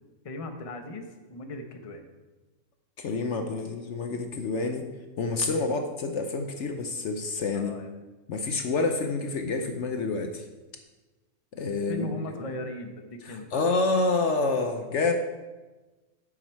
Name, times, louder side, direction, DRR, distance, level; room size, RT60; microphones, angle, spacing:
voice 1, 0.2-2.1 5.7-5.8 7.5-7.9 11.9-13.7, left 2 dB, 30° left, 5 dB, 0.8 m, -38 dB
voice 2, 3.0-4.9 5.2-7.7 8.3-10.5 11.5-12.1 13.2-15.1, left 3 dB, 60° left, 6 dB, 0.9 m, -28 dB
9.5 x 7.3 x 4.6 m, 1.2 s
omnidirectional pair, 1.5 m